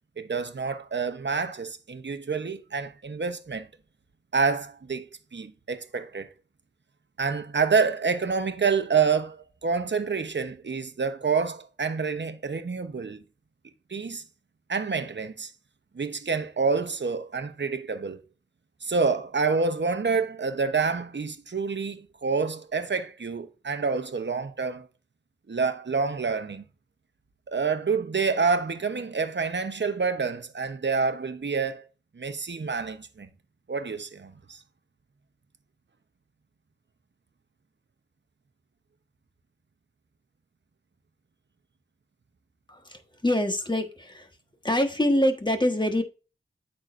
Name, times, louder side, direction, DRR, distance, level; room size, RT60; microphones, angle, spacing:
voice 1, 0.2-3.7 4.3-6.3 7.2-13.2 13.9-14.2 14.7-15.5 15.9-18.2 18.8-24.9 25.5-26.6 27.5-31.8 32.1-33.3 33.7-34.6, right 5 dB, 60° right, 0.9 m, -28 dB
voice 2, 42.7-44.3 44.6-46.0, left 1 dB, 20° left, 1.4 m, -25 dB
8.9 x 6.4 x 2.6 m
wide cardioid pair, 65°, 21 cm